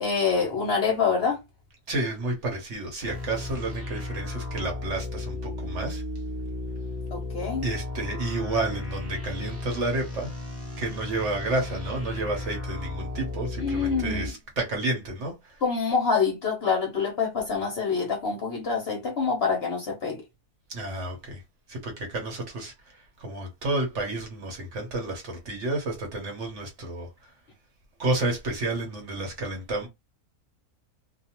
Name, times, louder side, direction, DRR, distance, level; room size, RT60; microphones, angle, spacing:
voice 1, 0.0-1.4 7.1-7.6 13.6-14.3 15.6-20.2, left 5 dB, 55° left, 0.7 m, -26 dB
voice 2, 1.9-6.0 7.6-10.3 10.8-15.6 20.7-21.4 21.7-27.3 28.0-29.9, right 2 dB, 55° right, 1.1 m, -31 dB
sound 1, 3.0-14.3, left 2 dB, 15° right, 0.6 m, -34 dB
2.5 x 2.3 x 2.8 m
omnidirectional pair, 1.6 m